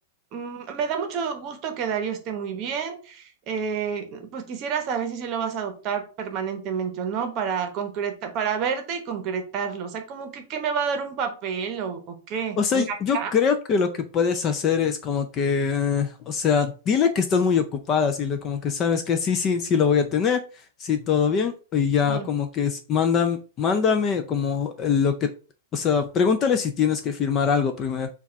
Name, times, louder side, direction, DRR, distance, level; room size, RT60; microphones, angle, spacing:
voice 1, 0.3-13.3 22.0-22.3, right 6 dB, 30° right, 6 dB, 0.8 m, -29 dB
voice 2, 12.6-20.4 20.8-25.3 25.7-28.1, left 6 dB, 20° left, 7 dB, 0.4 m, -23 dB
4.6 x 2.3 x 4.5 m, 0.36 s
supercardioid pair, 165°, 0 cm